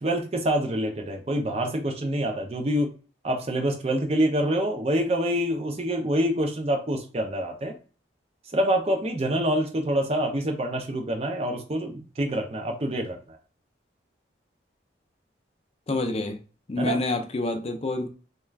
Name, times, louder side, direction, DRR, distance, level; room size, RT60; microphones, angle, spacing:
voice 1, 0.0-2.9 3.2-7.7 8.5-13.4 16.8-17.0, right 1 dB, 35° right, 0.5 m, -26 dB
voice 2, 15.9-16.4 16.7-18.1, left 2 dB, 30° left, 0.4 m, -27 dB
2.3 x 2.2 x 3.2 m
head